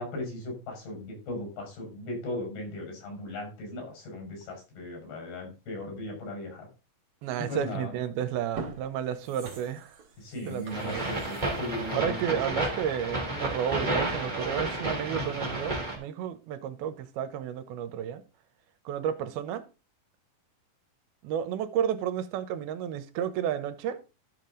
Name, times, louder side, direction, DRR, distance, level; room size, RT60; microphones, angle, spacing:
voice 1, 0.0-6.7 7.4-7.9 10.2-12.6, left 1 dB, 85° left, 7.6 m, -37 dB
voice 2, 7.2-10.0 10.5-11.0 11.9-18.2 18.9-19.7 21.2-24.0, right 9 dB, 85° right, 2.8 m, -32 dB
sound 1, 7.8-7.9 8.4-13.1 13.5-13.6, right 4 dB, 45° right, 2.3 m, -45 dB
sound 2, 10.7-16.0, right 2 dB, 15° right, 2.7 m, -31 dB
13.0 x 6.7 x 3.8 m
omnidirectional pair, 4.4 m